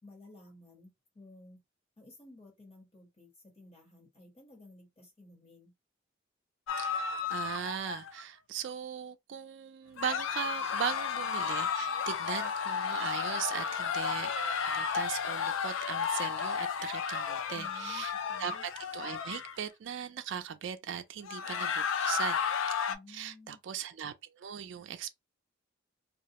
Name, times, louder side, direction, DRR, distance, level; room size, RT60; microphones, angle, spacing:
voice 1, 0.0-1.6 2.0-5.7 17.5-18.6 22.9-23.6, left 2 dB, 30° left, 1.2 m, -54 dB
sound 1, 6.7-8.2 10.0-19.6 21.2-22.9, left 6 dB, 80° left, 0.4 m, -33 dB
voice 2, 6.8-14.3 14.7-18.1 18.4-22.4 22.7-22.8 23.1-25.1, right 8 dB, 65° right, 0.3 m, -39 dB
2.3 x 2.0 x 2.8 m
head